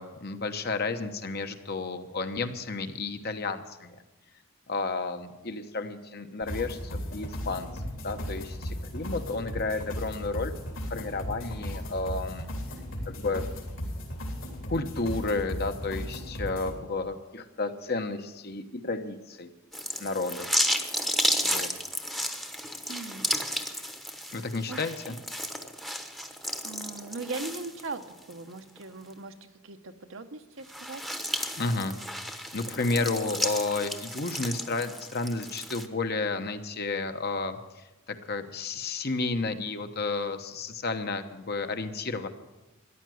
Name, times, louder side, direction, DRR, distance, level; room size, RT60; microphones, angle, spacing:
voice 1, 0.0-4.0 4.7-7.7 8.0-10.5 10.9-12.5 13.1-13.5 14.7-19.5 20.0-20.5 21.4-21.7 24.3-25.1 31.6-32.0 32.2-42.3, left 3 dB, 50° left, 7 dB, 1.1 m, -32 dB
sound 1, 6.4-16.7, equal, 70° left, 3.2 m, -36 dB
sound 2, 19.7-28.3 28.8-28.9 30.6-35.9, equal, ahead, 0.9 m, -32 dB
voice 2, 22.9-23.3 24.7-24.8 25.1-25.2 26.6-29.3 29.6-31.0, right 3 dB, 65° right, 8 dB, 1.0 m, -39 dB
14.0 x 10.5 x 7.7 m, 1.0 s
head